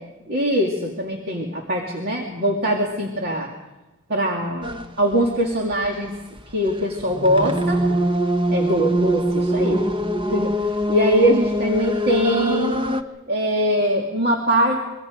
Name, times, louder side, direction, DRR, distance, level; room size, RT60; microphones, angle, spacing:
voice 1, 0.3-3.5 4.1-4.7 5.0-6.2 6.5-7.8 8.5-9.8 10.3-10.5 10.9-12.8 13.3-14.8, equal, 50° right, 0 dB, 2.5 m, -22 dB
sound 1, 4.6-4.9 5.1-13.0, equal, 25° right, 1.1 m, -23 dB
26.0 x 23.5 x 5.2 m, 1.1 s
head